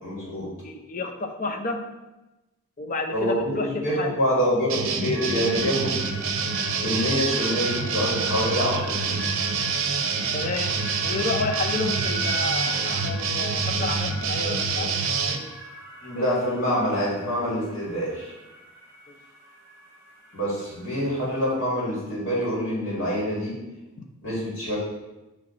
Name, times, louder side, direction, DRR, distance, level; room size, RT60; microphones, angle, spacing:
voice 1, 0.0-0.5 3.1-6.0 6.8-9.3 16.0-18.3 20.3-23.6 24.2-24.8, equal, 50° left, -7 dB, 2.3 m, -26 dB
voice 2, 0.6-1.8 2.8-4.2 10.3-10.8 11.0-15.5 16.1-16.3 19.1-19.2 24.0-24.1, left 3 dB, 35° left, 3 dB, 0.6 m, -31 dB
sound 1, 4.7-15.4, right 5 dB, 65° right, 0.6 m, -27 dB
sound 2, 5.1-21.5, right 1 dB, 10° right, 1.6 m, -38 dB
9.0 x 3.2 x 3.9 m, 1.0 s
head